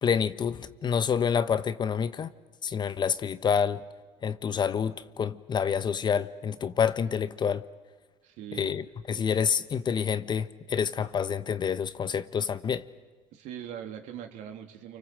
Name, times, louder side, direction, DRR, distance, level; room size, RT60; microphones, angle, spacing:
voice 1, 0.0-2.3 2.6-3.8 4.2-7.6 8.5-12.9, left 7 dB, 35° left, 1.0 m, -28 dB
voice 2, 8.2-8.7 13.3-15.0, right 9 dB, 65° right, 3.0 m, -41 dB
29.0 x 24.5 x 7.7 m
supercardioid pair, 100°, 13 cm